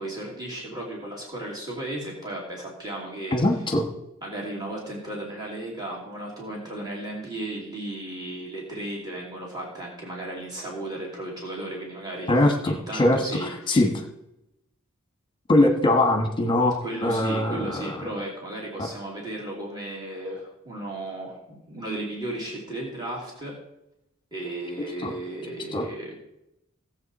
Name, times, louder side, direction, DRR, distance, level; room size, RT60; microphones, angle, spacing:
voice 1, 0.0-3.4 4.2-13.8 15.7-15.8 16.8-23.6 24.3-26.2, right 1 dB, 20° right, -4 dB, 2.9 m, -35 dB
voice 2, 3.3-3.9 12.3-14.0 15.5-18.1 25.0-25.1 25.7-25.8, left 1 dB, 25° left, 3 dB, 1.2 m, -22 dB
17.0 x 7.5 x 4.2 m, 0.87 s
head